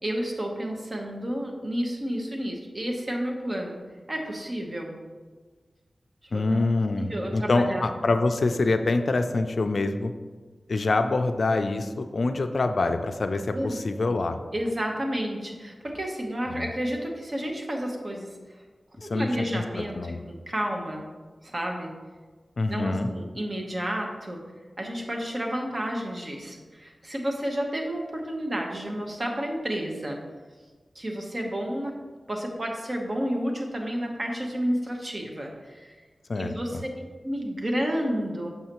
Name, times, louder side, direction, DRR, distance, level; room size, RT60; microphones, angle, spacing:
voice 1, 0.0-3.7 4.1-5.0 6.3-6.4 7.0-7.8 13.5-13.8 14.5-18.3 19.0-21.1 21.4-21.9 22.7-24.4 24.8-30.2 30.9-31.9 32.3-36.0 36.3-38.5, equal, 40° right, 1 dB, 0.9 m, -31 dB
voice 2, 6.3-10.1 10.7-14.4 16.5-16.7 19.0-20.2 22.6-23.1 36.3-36.8, left 3 dB, 65° left, 8 dB, 0.4 m, -25 dB
6.4 x 5.6 x 2.9 m, 1.4 s
wide cardioid pair, 95°, 0 cm